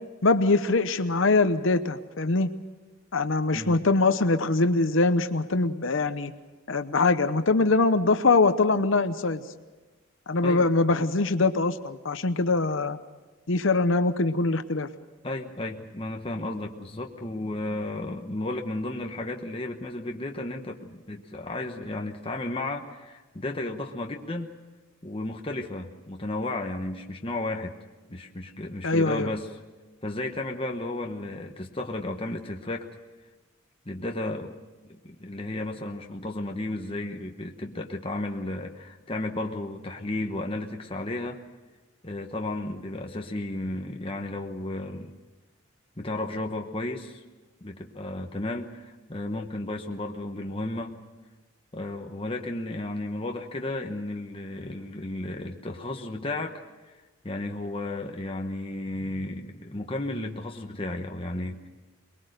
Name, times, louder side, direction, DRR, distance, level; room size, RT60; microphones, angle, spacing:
voice 1, 0.2-2.5 3.1-6.3 6.7-9.4 10.3-13.0 13.5-14.9 28.8-29.3, left 3 dB, 70° left, 10 dB, 0.9 m, -23 dB
voice 2, 3.5-3.9 10.4-10.7 15.2-24.5 25.0-27.7 28.1-29.5 30.0-32.9 33.8-34.5 35.0-41.4 42.0-45.1 46.0-47.2 47.6-51.0 51.7-57.0 57.2-61.7, left 2 dB, 25° left, 2 dB, 1.1 m, -33 dB
23.5 x 21.5 x 6.6 m, 1.2 s
head